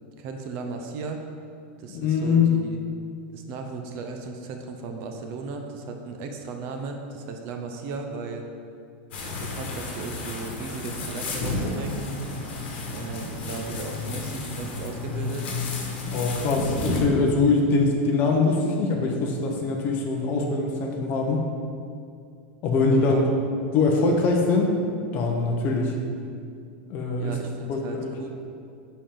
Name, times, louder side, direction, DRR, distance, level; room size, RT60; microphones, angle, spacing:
voice 1, 0.2-1.2 1.8-2.8 3.3-8.5 9.2-12.0 12.9-15.5 22.7-23.3 24.2-24.3 27.2-28.3, right 4 dB, 40° right, 4 dB, 0.7 m, -36 dB
voice 2, 1.9-2.5 16.1-21.4 22.6-23.2 23.7-24.8 25.1-25.9 26.9-27.3 27.7-28.1, left 3 dB, 35° left, 1 dB, 0.9 m, -23 dB
sound 1, 9.1-17.0, left 2 dB, 65° left, 1.5 m, -32 dB
10.0 x 4.4 x 3.8 m, 2.4 s
supercardioid pair, 165°, 6 cm